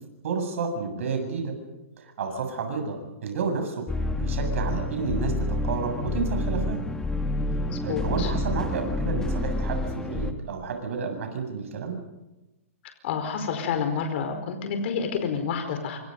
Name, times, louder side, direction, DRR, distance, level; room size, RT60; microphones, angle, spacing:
voice 1, 0.2-1.6 2.0-3.8 4.2-6.8 7.8-12.0, right 5 dB, 65° right, 5 dB, 7.7 m, -30 dB
sound 1, 3.9-10.3, left 2 dB, 10° left, 2.0 m, -28 dB
voice 2, 7.7-8.3 13.0-16.0, left 6 dB, 55° left, 6 dB, 4.7 m, -29 dB
27.5 x 25.5 x 5.5 m, 0.98 s
hypercardioid pair, 135°, 8 cm